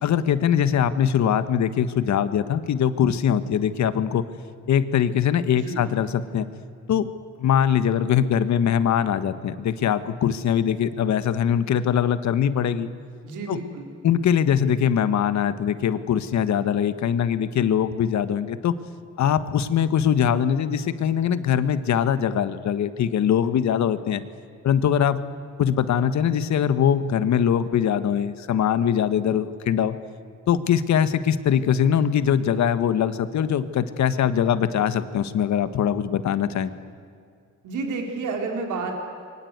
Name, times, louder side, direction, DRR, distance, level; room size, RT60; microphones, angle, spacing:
voice 1, 0.0-4.2 4.7-6.5 6.9-7.1 7.4-12.9 13.5-13.6 14.0-18.7 19.2-24.2 24.6-25.2 25.6-30.0 30.5-36.7, left 8 dB, 65° left, 12 dB, 1.5 m, -22 dB
voice 2, 13.2-13.9 37.6-39.0, right 3 dB, 80° right, 2 dB, 4.0 m, -30 dB
28.0 x 23.5 x 8.2 m, 2.3 s
cardioid pair, 90°, 30 cm